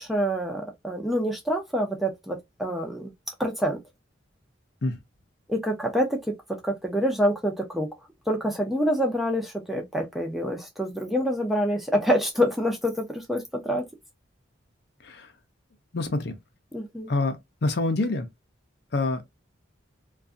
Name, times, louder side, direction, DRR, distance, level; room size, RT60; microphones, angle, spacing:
voice 1, 0.0-3.1 3.4-3.8 5.5-6.2 6.6-7.9 8.3-13.8 16.7-17.1, equal, ahead, 0.5 m, -26 dB
voice 2, 15.9-16.3 17.1-18.3 18.9-19.2, left 2 dB, 55° left, 0.5 m, -26 dB
2.5 x 2.3 x 2.4 m
head